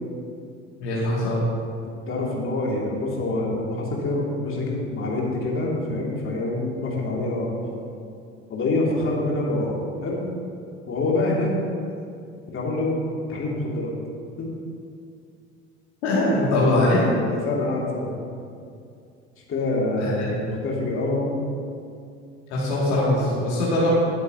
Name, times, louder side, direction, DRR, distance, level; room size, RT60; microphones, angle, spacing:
voice 1, 0.8-1.5 16.0-17.0 20.0-20.3 22.5-23.9, left 1 dB, 65° left, -7 dB, 2.5 m, -22 dB
voice 2, 2.1-7.6 8.5-10.2 10.9-11.9 12.5-12.9 13.3-13.9 14.4-14.5 16.3-18.1 19.5-21.3, left 2 dB, 35° left, -3 dB, 2.6 m, -26 dB
18.0 x 8.1 x 2.9 m, 2.4 s
figure-of-eight pair, 60°, 36 cm